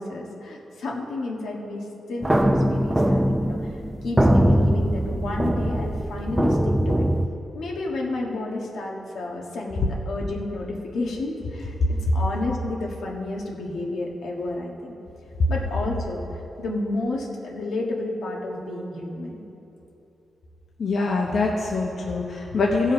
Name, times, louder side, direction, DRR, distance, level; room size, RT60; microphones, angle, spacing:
voice 1, 0.0-3.6 4.0-7.1 7.5-14.9 15.5-16.2 16.6-19.4, left 2 dB, 85° left, -1 dB, 1.5 m, -31 dB
sound 1, 2.2-7.3, right 1 dB, 10° right, 0.5 m, -21 dB
voice 2, 20.8-22.9, left 3 dB, 65° left, -1 dB, 0.9 m, -24 dB
16.0 x 5.5 x 5.2 m, 3.0 s
cardioid pair, 90°, 0 cm